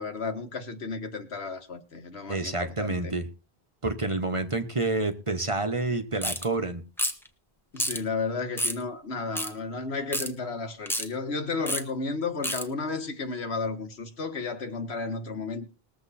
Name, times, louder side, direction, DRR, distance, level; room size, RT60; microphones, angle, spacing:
voice 1, 0.0-3.1 7.7-15.7, left 4 dB, 85° left, 1.8 m, -33 dB
voice 2, 2.3-3.3 3.8-6.8, right 2 dB, 30° right, 1.3 m, -28 dB
sound 1, 6.2-6.5 7.0-7.3 7.8-8.0 8.6-8.8 9.4-9.5 10.1-10.3 10.9-11.1 11.7-11.8 12.4-12.6, equal, ahead, 1.3 m, -28 dB
20.5 x 7.7 x 4.3 m
omnidirectional pair, 1.1 m